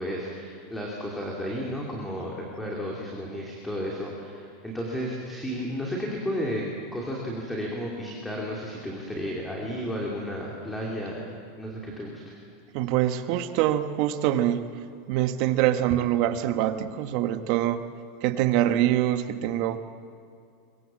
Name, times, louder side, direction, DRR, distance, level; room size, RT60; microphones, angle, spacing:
voice 1, 0.0-6.6 6.9-11.3 11.6-12.3, equal, 5° left, -3 dB, 3.0 m, -33 dB
voice 2, 12.7-14.7 15.1-17.8 18.2-19.8, right 12 dB, 50° right, 9 dB, 1.4 m, -24 dB
23.5 x 23.0 x 7.6 m, 2.3 s
supercardioid pair, 155°, 0 cm